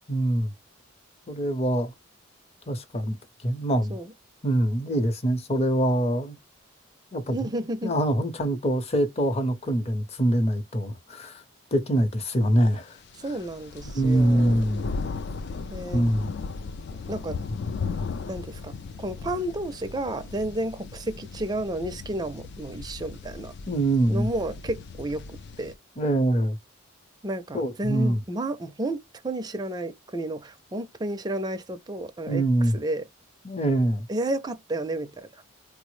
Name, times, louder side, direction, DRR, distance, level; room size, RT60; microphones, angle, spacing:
voice 1, 0.1-0.5 1.3-1.9 2.7-3.2 3.4-4.0 4.4-6.4 7.1-7.5 7.8-11.4 11.7-13.0 13.9-14.8 15.9-16.3 23.7-24.3 26.0-26.6 27.5-28.2 32.3-32.8 33.4-34.1, right 1 dB, 30° left, 0.7 m, -24 dB
voice 2, 7.3-7.9 13.2-14.6 15.7-16.0 17.1-17.4 18.3-23.5 24.1-25.8 27.2-33.1 34.1-35.4, right 1 dB, 20° right, 0.4 m, -32 dB
sound 1, 13.1-25.8, left 4 dB, 55° left, 0.3 m, -36 dB
4.0 x 2.0 x 3.1 m
head